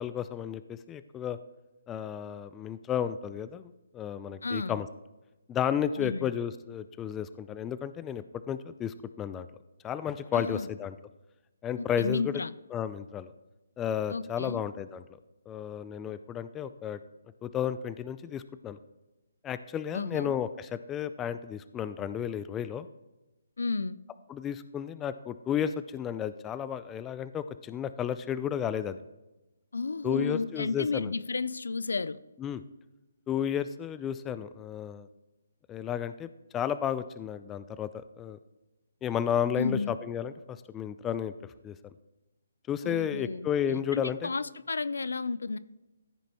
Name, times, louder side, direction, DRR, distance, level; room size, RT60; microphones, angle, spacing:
voice 1, 0.0-1.4 1.9-3.6 3.9-4.9 5.5-9.5 9.8-10.9 11.6-12.4 12.7-13.3 13.8-15.0 15.5-17.0 17.4-18.8 19.4-22.9 24.3-29.0 30.0-31.1 32.4-32.6 33.3-35.1 35.7-36.3 36.5-37.9 38.2-38.4 39.0-41.3 41.6-41.8 42.7-44.3, left 9 dB, 15° left, 13 dB, 0.3 m, -32 dB
voice 2, 4.4-4.8 6.0-6.3 10.3-10.7 11.8-12.5 14.1-14.6 19.9-20.4 23.6-24.0 29.7-32.2 39.6-40.0 42.8-45.6, left 4 dB, 80° left, 17 dB, 0.4 m, -32 dB
14.0 x 5.3 x 3.0 m, 1.0 s
hypercardioid pair, 155°, 0 cm